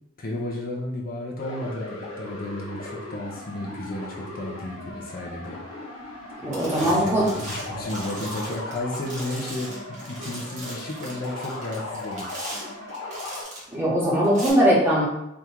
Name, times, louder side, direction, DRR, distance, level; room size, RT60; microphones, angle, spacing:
voice 1, 0.2-5.6 6.8-12.5, left 1 dB, 45° left, -3 dB, 0.7 m, -33 dB
sound 1, 1.4-13.4, left 2 dB, 75° left, 1.1 m, -38 dB
sound 2, 6.0-6.2 6.5-13.7 14.2-14.5, right 1 dB, 40° right, 1.4 m, -39 dB
voice 2, 6.4-7.3 13.7-15.1, equal, 10° right, -7 dB, 1.3 m, -20 dB
3.5 x 2.6 x 4.4 m, 0.86 s
head